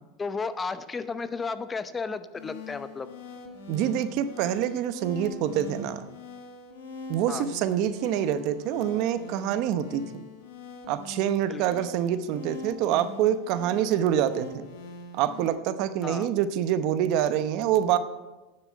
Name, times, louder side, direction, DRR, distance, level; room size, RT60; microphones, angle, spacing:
voice 1, 0.2-3.1 7.3-7.4 11.5-11.6 16.0-16.3, left 4 dB, 20° left, 12 dB, 0.7 m, -33 dB
sound 1, 2.3-15.5, left 3 dB, 85° left, 2.0 m, -42 dB
voice 2, 3.7-6.0 7.1-10.2 10.9-14.7 15.1-18.0, right 10 dB, 60° right, 12 dB, 0.8 m, -26 dB
9.7 x 7.5 x 8.4 m, 1.1 s
supercardioid pair, 115°, 0 cm